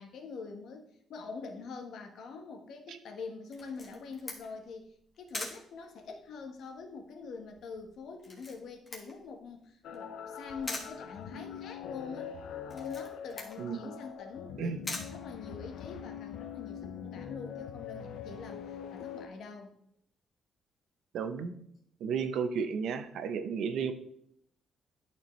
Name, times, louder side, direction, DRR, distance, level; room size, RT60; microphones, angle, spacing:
voice 1, 0.0-4.9 5.2-12.4 12.6-19.8, left 4 dB, 65° left, 4 dB, 1.1 m, -44 dB
Camera, 3.5-16.0, left 2 dB, 25° left, 1.5 m, -45 dB
sound 1, 9.8-19.3, left 8 dB, 90° left, 0.6 m, -43 dB
voice 2, 13.6-13.9 14.6-14.8 21.1-21.6 22.0-23.9, right 6 dB, 70° right, 9 dB, 0.7 m, -33 dB
11.5 x 4.4 x 3.1 m, 0.71 s
cardioid pair, 145°, 0 cm